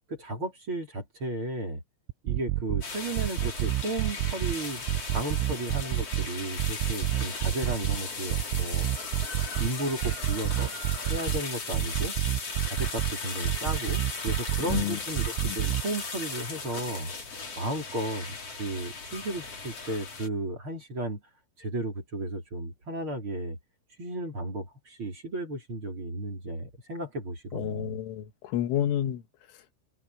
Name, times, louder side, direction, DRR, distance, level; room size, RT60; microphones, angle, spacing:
voice 1, 0.1-1.8 2.2-8.9 9.5-10.7 11.1-12.2 12.7-17.1 17.6-21.2 21.6-23.6 24.0-28.0, right 1 dB, 25° right, 4.5 m, -34 dB
sound 1, 2.1-2.8 3.2-4.5 4.9-6.3 6.6-8.0 8.3-9.7 10.0-11.4 11.7-13.1 13.4-14.8 15.2-15.8, right 16 dB, 85° right, 3.1 m, -28 dB
sound 2, 2.8-20.3, left 4 dB, 30° left, 4.9 m, -37 dB
voice 2, 14.7-15.0 15.5-15.6 27.5-29.2, left 11 dB, 80° left, 4.0 m, -29 dB
omnidirectional pair, 5.7 m